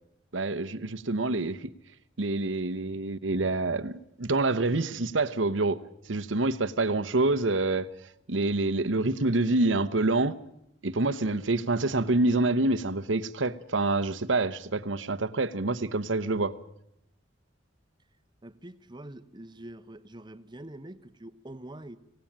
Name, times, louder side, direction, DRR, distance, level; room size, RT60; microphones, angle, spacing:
voice 1, 0.3-1.7 2.2-5.8 6.1-7.9 8.3-10.4 10.8-16.5, right 2 dB, 75° right, 11 dB, 1.1 m, -27 dB
voice 2, 18.4-22.0, right 1 dB, 25° right, 11 dB, 1.1 m, -45 dB
26.0 x 17.5 x 8.9 m, 0.81 s
head